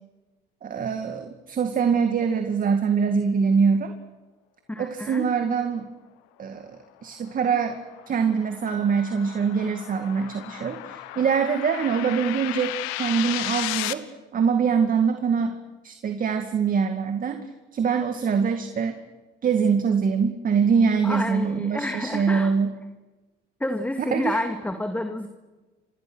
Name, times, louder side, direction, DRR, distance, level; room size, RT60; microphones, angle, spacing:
voice 1, 0.6-3.9 4.8-5.9 6.4-6.7 7.0-7.8 8.1-14.0 14.3-15.6 15.8-17.4 17.7-19.0 19.4-22.7 24.1-24.4, right 6 dB, 40° right, 7 dB, 2.2 m, -23 dB
voice 2, 4.7-5.3 21.0-22.5 23.6-25.3, left 1 dB, 5° left, 6 dB, 2.3 m, -29 dB
sound 1, 7.1-13.9, left 17 dB, 85° left, 1.4 m, -34 dB
Piano, 8.7-10.8, left 1 dB, 40° left, 7.9 m, -47 dB
30.0 x 26.5 x 6.3 m, 1.2 s
supercardioid pair, 90°, 20 cm